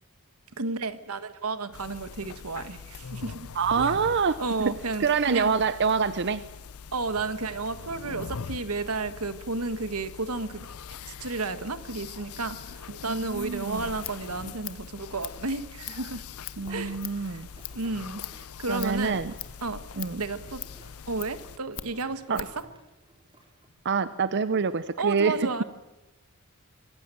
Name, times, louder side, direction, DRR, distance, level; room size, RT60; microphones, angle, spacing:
voice 1, 0.6-3.5 3.8-3.9 4.4-5.5 6.9-10.7 11.1-16.2 16.7-17.4 17.7-18.2 18.6-19.2 19.6-19.8 20.2-20.6 21.1-22.5 25.0-25.6, right 3 dB, 90° right, 12 dB, 1.4 m, -32 dB
sound 1, 1.7-21.6, left 6 dB, 85° left, 0.7 m, -43 dB
voice 2, 3.5-4.7 5.0-6.4 13.1-13.9 16.6-17.5 18.7-19.3 20.0-20.2 22.3-22.4 23.8-25.5, right 5 dB, 55° right, 14 dB, 0.6 m, -26 dB
Scissors, 13.7-22.7, left 13 dB, 60° left, 1.3 m, -43 dB
sound 2, 16.2-23.7, right 1 dB, 25° right, 4.3 m, -54 dB
25.0 x 15.5 x 7.7 m, 1.0 s
head